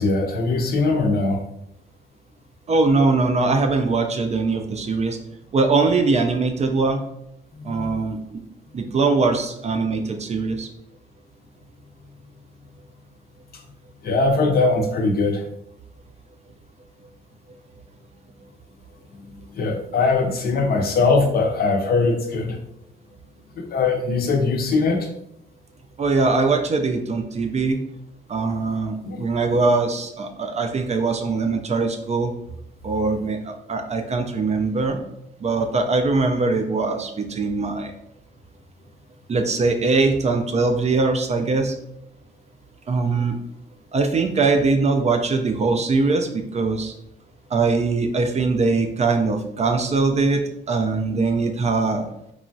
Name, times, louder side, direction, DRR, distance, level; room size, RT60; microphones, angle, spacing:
voice 1, 0.0-1.4 7.6-8.0 14.0-15.4 19.2-22.6 23.6-25.1 29.0-29.3, left 3 dB, 50° left, 3 dB, 0.5 m, -21 dB
voice 2, 2.7-5.2 5.5-7.0 7.6-8.2 8.7-10.7 26.0-27.8 28.3-32.3 32.8-35.0 35.4-37.9 39.3-41.7 42.9-43.3 43.9-46.9 47.5-50.4 50.7-52.1, right 3 dB, 35° right, 5 dB, 0.4 m, -21 dB
2.9 x 2.2 x 2.6 m, 0.78 s
cardioid pair, 90°, 20 cm